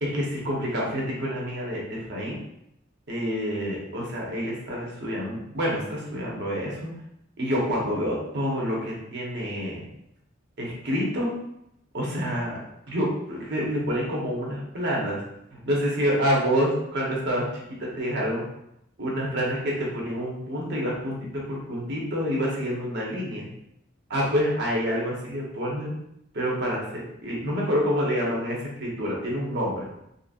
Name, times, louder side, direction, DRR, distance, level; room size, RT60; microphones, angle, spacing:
voice 1, 0.0-2.4 3.1-6.9 7.4-9.9 10.6-11.3 11.9-12.6 12.9-15.2 15.5-18.4 19.0-23.5 24.1-25.9 26.3-29.9, equal, 60° right, -3 dB, 0.9 m, -27 dB
3.8 x 2.0 x 2.4 m, 0.78 s
head